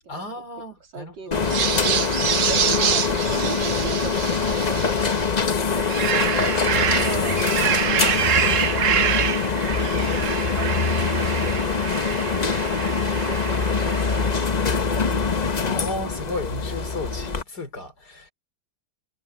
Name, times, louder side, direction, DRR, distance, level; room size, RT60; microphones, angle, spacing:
voice 1, 0.1-1.5 15.5-18.3, left 2 dB, 60° left, 4.9 m, -34 dB
voice 2, 0.9-2.0 2.5-7.4 7.7-10.3 10.6-15.4, right 4 dB, 85° right, 3.5 m, -40 dB
sound 1, 1.3-17.4, left 5 dB, 35° left, 0.7 m, -24 dB
sound 2, 1.4-5.3 5.7-14.4, right 8 dB, 55° right, 1.1 m, -26 dB
omnidirectional pair, 1.9 m